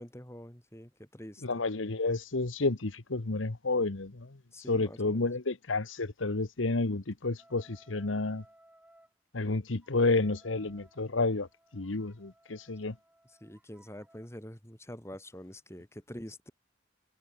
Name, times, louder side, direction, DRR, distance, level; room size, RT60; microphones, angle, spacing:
voice 1, 0.0-1.6 4.5-5.2 13.3-16.5, equal, 15° left, 4.0 m, -46 dB
voice 2, 1.4-4.4 4.7-8.4 9.3-11.5 11.7-12.9, left 3 dB, 85° left, 1.2 m, -30 dB
sound 1, 7.4-9.1 9.8-14.3, right 1 dB, 5° right, 6.1 m, -62 dB
head